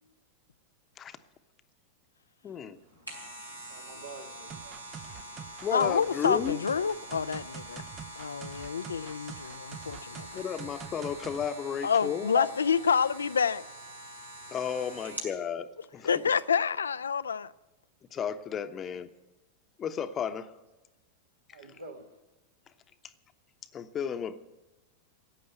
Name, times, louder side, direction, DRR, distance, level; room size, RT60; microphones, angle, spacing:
voice 1, 2.4-2.8 5.6-6.6 10.3-12.5 14.5-15.7 15.9-16.1 18.1-19.1 19.8-20.5 23.7-24.4, left 8 dB, 25° left, 0.9 m, -33 dB
sound 1, 2.8-15.4 15.8-15.9, right 1 dB, 85° right, 3.6 m, -45 dB
voice 2, 3.7-4.9 14.7-14.9 21.5-22.2, right 3 dB, 70° right, 2.1 m, -48 dB
sound 2, 4.5-11.4, right 8 dB, 25° right, 0.6 m, -46 dB
voice 3, 5.7-7.8 8.2-10.4 11.8-13.6 16.0-17.5, left 6 dB, 70° left, 0.4 m, -28 dB
15.0 x 9.5 x 8.2 m
figure-of-eight pair, 90°, 0 cm